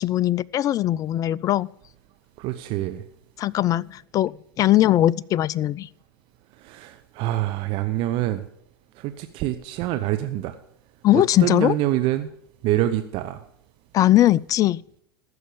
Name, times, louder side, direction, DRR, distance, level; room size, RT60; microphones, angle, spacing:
voice 1, 0.0-1.7 3.4-5.9 11.0-11.8 13.9-14.8, left 14 dB, 30° left, 0.3 m, -20 dB
voice 2, 2.4-3.0 6.6-8.4 9.0-10.5 11.1-12.3 12.6-13.4, right 14 dB, 45° right, 0.8 m, -26 dB
14.5 x 6.3 x 7.0 m
hypercardioid pair, 100°, 12 cm